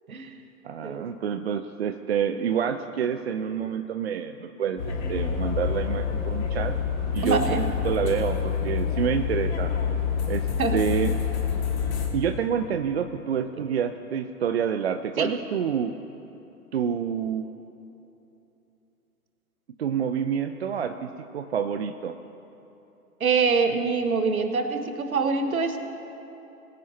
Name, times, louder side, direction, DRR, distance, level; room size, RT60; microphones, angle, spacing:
voice 1, 0.6-6.8 7.1-9.7 10.3-10.5 10.7-11.2 12.1-15.9 16.7-17.5 19.8-22.2, right 8 dB, 45° right, 8 dB, 0.5 m, -28 dB
sound 1, 4.8-12.1, left 7 dB, 45° left, 2.2 m, -27 dB
voice 2, 7.2-7.6 10.6-10.8 15.2-15.3 23.2-25.8, right 4 dB, 65° right, 7 dB, 1.4 m, -24 dB
21.0 x 10.0 x 2.9 m, 3.0 s
figure-of-eight pair, 125°, 45 cm